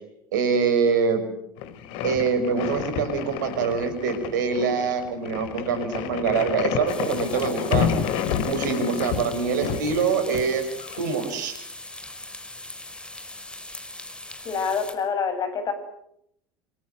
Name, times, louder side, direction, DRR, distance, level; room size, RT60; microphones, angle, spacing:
voice 1, 0.3-1.3 2.0-7.9 8.4-10.7 11.0-11.6, right 5 dB, 70° right, 9 dB, 5.8 m, -24 dB
sound 1, 1.6-11.0, left 9 dB, 55° left, 2.6 m, -30 dB
sound 2, 6.9-14.9, left 2 dB, 10° left, 5.4 m, -40 dB
voice 2, 14.4-15.7, left 6 dB, 40° left, 9 dB, 7.8 m, -26 dB
27.0 x 25.5 x 7.9 m, 0.74 s
figure-of-eight pair, 70°, 11 cm